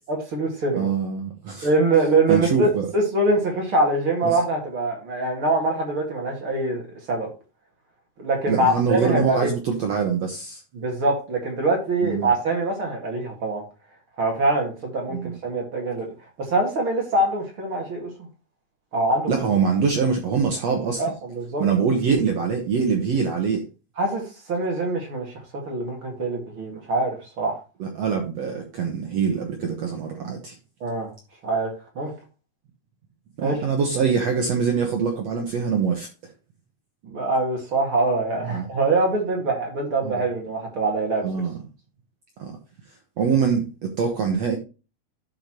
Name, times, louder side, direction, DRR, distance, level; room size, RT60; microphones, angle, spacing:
voice 1, 0.1-0.9 1.6-7.3 8.2-9.5 10.7-13.6 14.2-16.1 16.4-18.1 18.9-19.4 21.0-21.6 24.0-24.2 24.5-27.6 30.8-31.1 31.4-32.1 33.4-33.6 37.0-41.2, right 2 dB, 40° right, 1 dB, 2.4 m, -24 dB
voice 2, 0.7-1.7 2.3-2.9 8.5-10.6 12.0-12.3 15.1-15.4 19.3-21.0 21.6-23.6 27.8-30.6 33.4-36.1 38.5-38.7 40.0-40.2 41.2-41.5 42.4-42.5 43.2-44.6, right 6 dB, 65° right, 3 dB, 1.7 m, -24 dB
12.0 x 5.7 x 3.0 m, 0.31 s
omnidirectional pair, 4.4 m